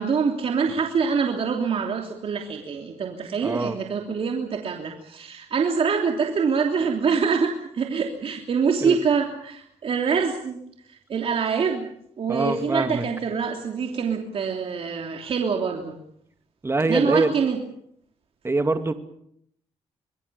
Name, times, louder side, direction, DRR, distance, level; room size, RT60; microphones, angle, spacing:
voice 1, 0.0-10.6 10.9-11.8 12.2-16.0 16.9-17.6, right 5 dB, 60° right, 2 dB, 3.2 m, -25 dB
voice 2, 3.4-3.8 8.8-9.0 12.3-13.1 16.6-17.3 18.4-18.9, right 2 dB, 25° right, 7 dB, 2.3 m, -23 dB
25.5 x 22.0 x 7.0 m, 0.71 s
cardioid pair, 70°, 11 cm